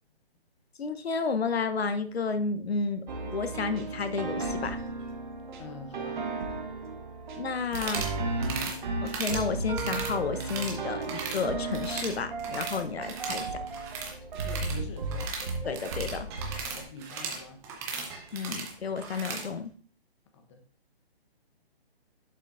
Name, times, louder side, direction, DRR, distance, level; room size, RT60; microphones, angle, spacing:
voice 1, 0.8-4.8 7.4-8.1 9.0-13.5 15.6-16.3 18.3-19.7, left 4 dB, 75° left, 10 dB, 0.9 m, -31 dB
sound 1, 3.1-16.8, right 3 dB, 50° right, 1.4 m, -35 dB
sound 2, 4.0-5.2 5.6-5.7 6.3-6.6 8.5-9.4 11.1-12.1 13.0-14.2 15.3-15.5 16.3-17.2 18.1-18.7 19.4-19.5, right 4 dB, 25° right, 1.4 m, -51 dB
voice 2, 5.5-6.2 12.9-13.0 14.4-15.3 16.6-17.6 20.3-20.6, left 3 dB, 30° left, 6 dB, 1.0 m, -45 dB
sound 3, 7.7-8.1 8.4-8.8 9.1-9.4 9.7-10.8 11.0-11.4 11.7-12.8 13.1-19.5, right 5 dB, 10° right, 0.6 m, -37 dB
11.0 x 5.6 x 2.5 m, 0.43 s
hypercardioid pair, 150°, 31 cm